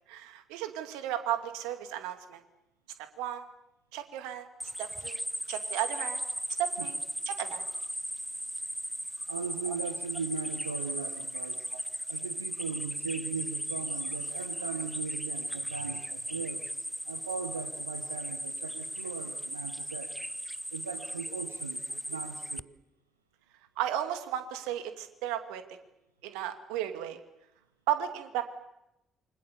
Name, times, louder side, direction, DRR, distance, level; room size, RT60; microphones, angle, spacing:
voice 1, 0.1-2.4 3.0-3.5 3.9-4.5 4.8-5.2 5.5-6.2 6.6-7.0 7.3-7.7 9.7-9.8 11.7-11.8 23.8-25.6 26.2-27.2 27.9-28.4, right 11 dB, 65° right, 8 dB, 2.4 m, -34 dB
sound 1, 4.6-22.6, right 1 dB, 5° right, 0.9 m, -37 dB
voice 2, 9.3-11.7 12.1-16.7 17.0-20.1 20.7-22.7, right 5 dB, 85° right, 8 dB, 1.2 m, -38 dB
28.0 x 25.5 x 7.1 m, 0.88 s
figure-of-eight pair, 45°, 0 cm